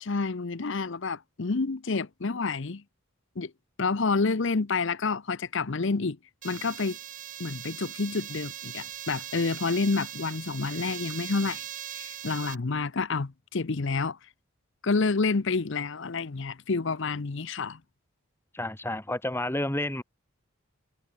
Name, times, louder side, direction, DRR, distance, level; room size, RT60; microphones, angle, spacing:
voice 1, 0.0-2.8 3.4-3.5 3.8-6.2 6.4-7.0 7.4-11.6 11.9-14.2 14.8-17.8, left 4 dB, 60° left, 0.7 m, -29 dB
sound 1, 6.4-12.6, right 11 dB, 35° right, 0.5 m, -40 dB
voice 2, 18.5-20.0, left 1 dB, 10° left, 1.7 m, -30 dB
head